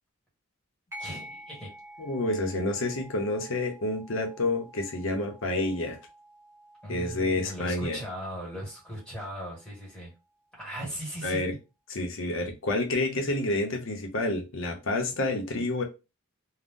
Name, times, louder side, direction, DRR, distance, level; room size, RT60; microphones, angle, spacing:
sound 1, 0.9-9.9, equal, 10° right, 1.0 m, -49 dB
voice 1, 1.0-1.7 6.8-10.1 10.5-11.6, equal, 5° left, 1.4 m, -38 dB
voice 2, 2.0-6.0 6.9-8.0 11.2-11.5 11.9-15.8, left 2 dB, 60° left, 0.7 m, -29 dB
2.6 x 2.1 x 3.5 m
head